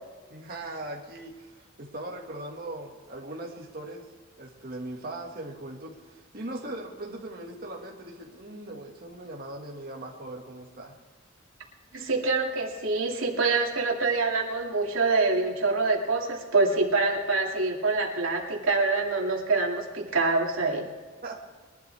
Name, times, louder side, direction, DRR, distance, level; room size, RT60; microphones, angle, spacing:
voice 1, 0.3-4.0 4.4-10.9 21.2-21.4, right 1 dB, 50° right, -2 dB, 2.0 m, -39 dB
voice 2, 11.9-20.9, right 3 dB, 90° right, -1 dB, 2.5 m, -25 dB
22.0 x 12.0 x 3.5 m, 1.4 s
head